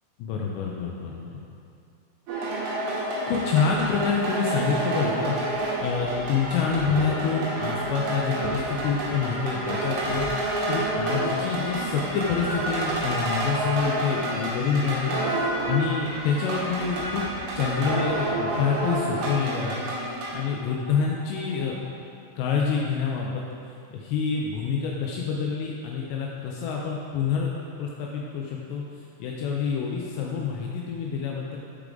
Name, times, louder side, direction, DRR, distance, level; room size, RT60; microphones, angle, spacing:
voice 1, 0.2-1.4 2.9-17.3 17.6-21.8 22.4-23.4 23.9-27.5 27.8-28.8 29.2-31.6, left 6 dB, 90° left, -2 dB, 2.4 m, -27 dB
sound 1, 2.3-20.3, right 2 dB, 80° right, 4.1 m, -29 dB
sound 2, 12.2-21.9, left 4 dB, 60° left, 2.0 m, -49 dB
14.0 x 4.8 x 3.8 m, 2.4 s
omnidirectional pair, 5.7 m